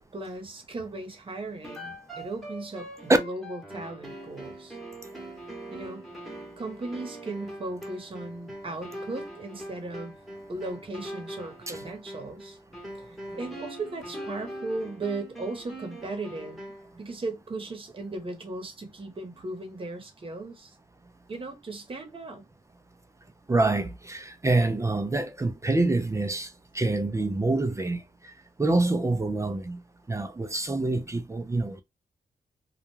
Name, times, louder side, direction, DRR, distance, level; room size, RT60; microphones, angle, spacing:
voice 1, 0.0-4.8 5.7-6.0 6.6-10.2 10.5-12.6 13.3-16.6 17.0-20.7 21.3-22.4, right 2 dB, 35° right, 1.0 m, -37 dB
sound 1, 1.6-16.9, right 1 dB, ahead, 1.0 m, -42 dB
voice 2, 23.5-26.5 26.7-28.0 28.6-29.8 30.1-31.8, right 2 dB, 20° right, 0.4 m, -26 dB
2.3 x 2.1 x 3.0 m
cardioid pair, 80°, 16 cm